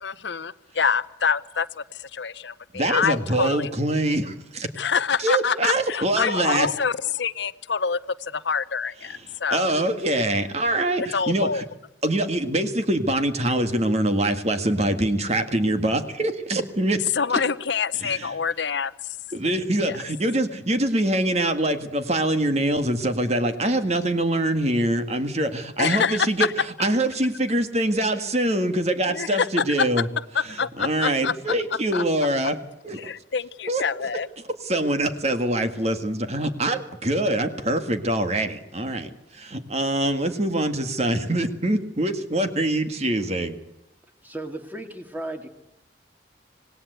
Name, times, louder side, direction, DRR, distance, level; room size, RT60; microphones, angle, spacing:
voice 1, 0.0-1.8 2.1-3.7 4.8-8.0 8.3-9.7 11.1-11.7 17.1-18.9 19.9-20.0 25.8-26.3 29.1-29.5 30.3-31.5 31.9-32.0 33.0-34.3, left 6 dB, 70° left, 15 dB, 0.8 m, -26 dB
voice 2, 2.7-4.7 5.2-6.7 9.1-11.6 12.0-17.0 17.3-17.4 18.0-18.3 19.3-30.1 30.4-32.6 32.8-33.1 33.7-34.1 34.6-43.6, right 1 dB, 35° right, 8 dB, 1.9 m, -24 dB
voice 3, 44.2-45.5, right 1 dB, 10° right, 6 dB, 2.5 m, -35 dB
26.5 x 18.5 x 8.1 m, 0.88 s
head